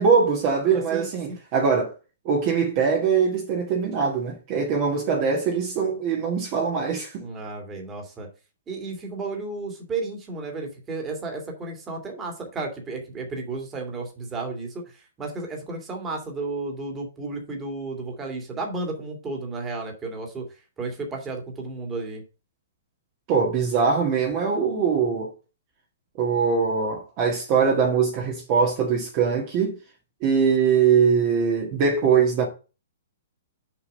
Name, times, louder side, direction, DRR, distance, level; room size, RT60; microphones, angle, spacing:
voice 1, 0.0-1.9 2.2-7.2 23.3-25.3 26.2-29.8 30.2-32.5, right 6 dB, 30° right, 1.7 m, -22 dB
voice 2, 0.7-1.1 7.2-8.3 8.7-20.5 20.8-22.2, right 3 dB, 15° right, 2.2 m, -33 dB
6.9 x 5.2 x 5.4 m
hypercardioid pair, 160°, 0 cm